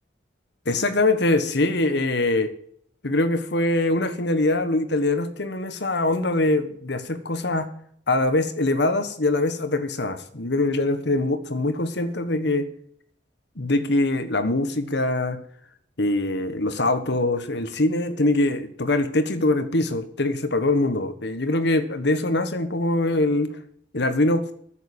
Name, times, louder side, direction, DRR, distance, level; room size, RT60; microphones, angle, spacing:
voice 1, 0.6-2.5 3.0-7.7 8.1-12.7 13.6-15.4 16.0-23.5 23.9-24.4, left 2 dB, 65° left, 10 dB, 1.4 m, -23 dB
10.0 x 7.5 x 8.5 m, 0.63 s
head